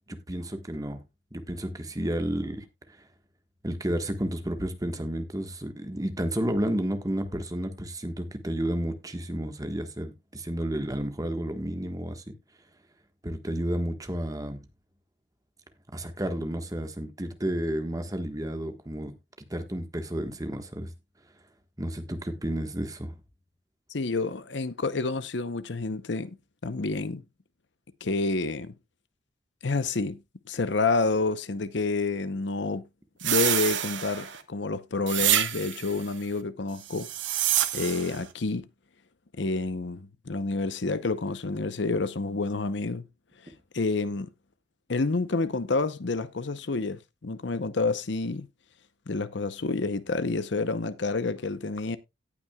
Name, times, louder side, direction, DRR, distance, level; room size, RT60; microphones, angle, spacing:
voice 1, 0.1-1.0 1.3-3.0 3.6-12.2 13.2-14.6 15.9-19.1 19.5-20.9 21.8-23.1, right 1 dB, 20° right, 1.3 m, -31 dB
voice 2, 23.9-26.3 26.6-27.2 28.0-28.7 29.6-30.2 30.5-32.9 33.2-37.1 37.7-38.7 39.4-43.0 43.7-44.3 44.9-48.5 49.1-52.0, left 3 dB, 70° left, 0.8 m, -29 dB
sound 1, 33.2-34.4 35.1-35.9 36.9-38.2, right 12 dB, 80° right, 1.2 m, -27 dB
17.5 x 6.0 x 2.3 m
head